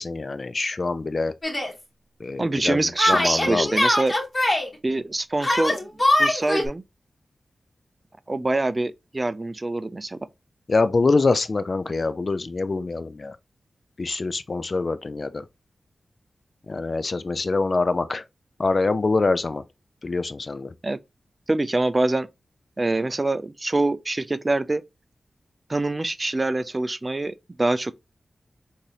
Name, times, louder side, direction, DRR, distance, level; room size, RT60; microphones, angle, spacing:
voice 1, 0.0-1.3 2.2-3.8 10.7-13.4 14.0-15.5 16.7-18.2 18.6-19.6 20.0-20.7, left 3 dB, 55° left, 0.3 m, -24 dB
Yell, 1.4-1.7 3.0-4.7 5.4-6.7, left 1 dB, 30° left, 1.2 m, -22 dB
voice 2, 2.4-4.1 4.8-5.8 6.2-6.8 8.3-10.2 20.8-21.0 21.5-22.3 22.8-24.8 25.7-27.9, right 2 dB, 35° right, 0.3 m, -25 dB
3.9 x 2.6 x 2.9 m
cardioid pair, 45°, 0 cm